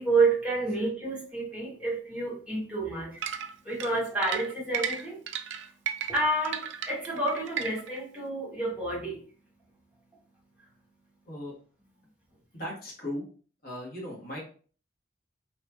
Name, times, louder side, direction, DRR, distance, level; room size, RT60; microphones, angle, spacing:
voice 1, 0.0-3.2 3.6-5.2 6.1-9.2, right 2 dB, 5° right, -6 dB, 1.5 m, -29 dB
sound 1, 3.2-8.0, right 8 dB, 70° right, 0.3 m, -34 dB
voice 2, 12.5-13.2 13.6-14.4, left 1 dB, 50° left, -3 dB, 1.2 m, -37 dB
3.0 x 2.9 x 2.2 m, 0.42 s
head